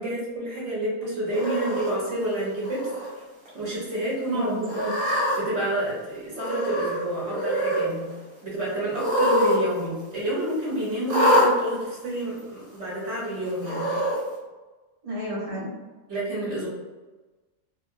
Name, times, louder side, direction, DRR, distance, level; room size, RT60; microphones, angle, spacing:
voice 1, 0.0-2.8 3.5-4.5 5.4-8.1 8.4-13.9 16.1-16.7, right 1 dB, 55° right, -6 dB, 1.3 m, -29 dB
Cat, 1.3-1.9 2.6-3.1 3.5-3.6 4.6-5.4 6.4-7.0 7.3-7.9 8.9-9.6 9.9-10.0 11.1-11.5 12.4-12.5 13.6-14.2, equal, 90° right, 1.5 m, -24 dB
voice 2, 4.3-4.9 15.0-15.7, equal, 30° right, -7 dB, 0.8 m, -30 dB
3.0 x 2.8 x 2.6 m, 1.2 s
omnidirectional pair, 1.5 m